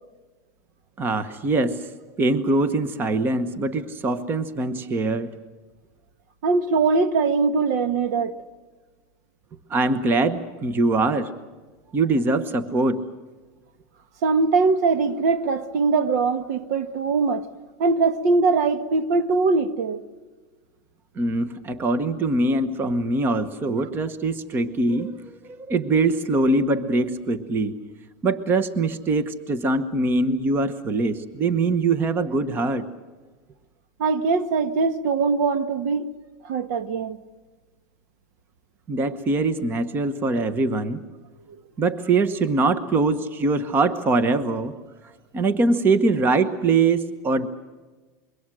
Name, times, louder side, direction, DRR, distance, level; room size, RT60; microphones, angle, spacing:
voice 1, 1.0-1.8 2.2-5.3 9.7-11.3 11.9-13.0 21.2-25.2 25.5-27.8 28.2-32.9 38.9-41.0 41.8-44.8 45.3-47.5, right 3 dB, 20° right, 1.1 m, -23 dB
voice 2, 6.4-8.3 14.2-17.4 17.8-20.0 34.0-36.1 36.4-37.2, right 4 dB, 70° right, 1.4 m, -21 dB
25.5 x 23.0 x 6.3 m
supercardioid pair, 150°, 9 cm